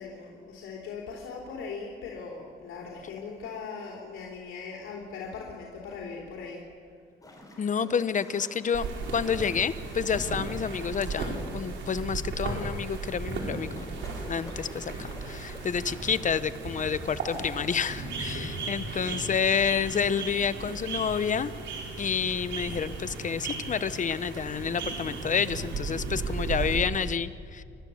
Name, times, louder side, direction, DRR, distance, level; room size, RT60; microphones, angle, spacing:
voice 1, 0.0-6.7 18.2-18.6, left 5 dB, 80° left, -2 dB, 3.5 m, -40 dB
sound 1, 7.2-17.5, left 1 dB, 20° left, 4.9 m, -52 dB
voice 2, 7.6-8.9 9.1-13.9 14.3-21.5 22.0-27.6, left 7 dB, 40° left, 14 dB, 0.9 m, -29 dB
sound 2, 8.7-26.8, right 3 dB, 70° right, 4.3 m, -35 dB
29.5 x 12.5 x 7.1 m, 2.3 s
cardioid pair, 90°, 20 cm